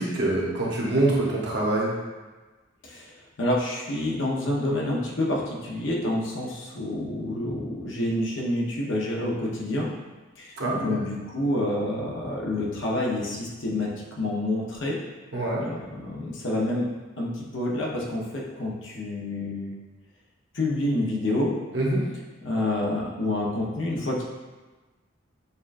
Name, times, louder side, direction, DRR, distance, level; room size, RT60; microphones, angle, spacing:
voice 1, 0.0-1.9 10.6-11.0 15.3-15.6 21.7-22.0, right 2 dB, 55° right, -4 dB, 0.9 m, -25 dB
voice 2, 3.4-9.9 10.4-13.9 14.2-15.0 15.6-16.9 17.2-19.7 20.5-21.5 22.4-24.2, left 1 dB, 65° left, -3 dB, 0.8 m, -28 dB
6.8 x 2.3 x 2.5 m, 1.2 s
head